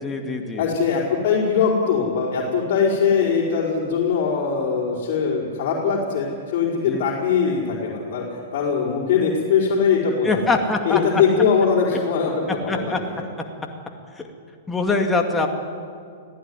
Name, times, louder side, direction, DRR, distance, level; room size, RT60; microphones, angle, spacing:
voice 1, 0.0-0.7 6.8-7.0 10.2-11.0 12.7-13.0 14.2-14.3 14.7-15.5, left 3 dB, 10° left, 2 dB, 2.3 m, -23 dB
voice 2, 0.5-8.2 8.5-10.5 10.8-13.2, left 6 dB, 50° left, -5 dB, 5.0 m, -21 dB
24.0 x 16.0 x 9.8 m, 2.3 s
hypercardioid pair, 110°, 0 cm